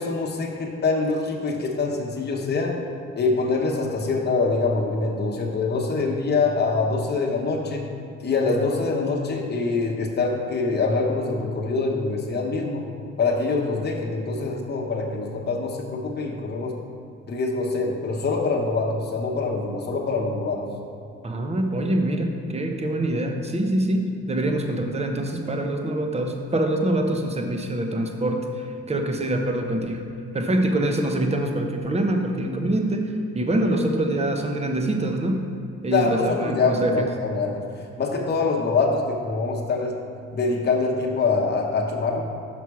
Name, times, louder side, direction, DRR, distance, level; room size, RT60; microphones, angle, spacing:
voice 1, 0.0-2.8 3.1-7.9 8.2-12.9 13.2-16.8 17.3-20.7 35.9-37.6 38.0-40.0 40.3-42.2, left 3 dB, 35° left, 0 dB, 1.0 m, -24 dB
voice 2, 21.2-30.0 30.3-35.4 35.8-37.1, right 1 dB, 20° right, 4 dB, 0.8 m, -25 dB
6.0 x 5.8 x 4.7 m, 2.5 s
cardioid pair, 90°, 30 cm